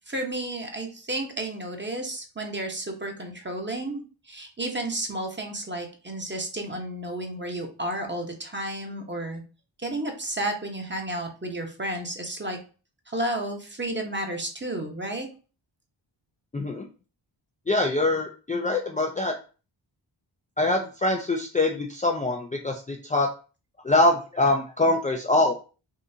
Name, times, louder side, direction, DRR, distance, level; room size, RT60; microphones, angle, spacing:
voice 1, 0.1-4.0 4.3-9.4 9.8-12.6 13.1-15.3, right 1 dB, 25° right, 3 dB, 1.0 m, -32 dB
voice 2, 16.5-16.9 17.7-19.3 20.6-23.3 23.8-25.7, left 2 dB, 15° left, 0 dB, 0.4 m, -24 dB
3.7 x 2.5 x 2.7 m, 0.36 s
cardioid pair, 50°, 47 cm